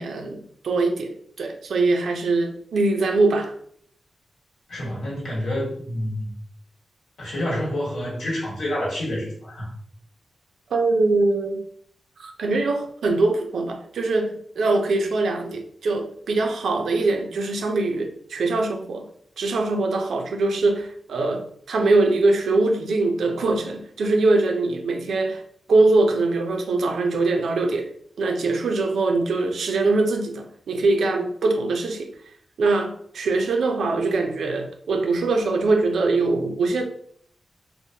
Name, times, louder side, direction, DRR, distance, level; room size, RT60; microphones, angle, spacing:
voice 1, 0.0-3.5 10.7-11.6 12.2-19.1 19.4-25.4 25.7-27.9 28.2-32.1 32.6-36.8, right 3 dB, 85° right, 0.4 m, -22 dB
voice 2, 4.7-6.3 7.2-9.7, left 1 dB, 90° left, 1.2 m, -28 dB
2.9 x 2.0 x 2.7 m
wide cardioid pair, 155°, 0 cm